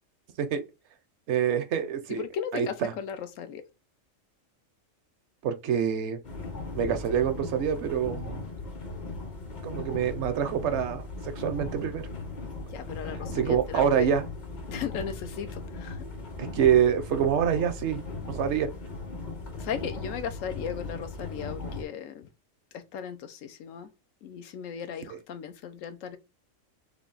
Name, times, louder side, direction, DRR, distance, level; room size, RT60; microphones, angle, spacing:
voice 1, 1.3-2.2 2.5-2.9 5.4-6.2 6.7-8.4 9.6-11.0 11.4-12.1 13.4-14.2 16.4-18.7, right 8 dB, 70° right, 0.8 m, -26 dB
voice 2, 2.1-3.6 12.7-14.1 14.7-16.0 19.6-22.3 22.7-23.9 24.2-26.2, left 8 dB, 80° left, 1.0 m, -37 dB
sound 1, 6.2-21.8, left 3 dB, 45° left, 0.7 m, -38 dB
3.4 x 2.3 x 3.8 m
omnidirectional pair, 1.3 m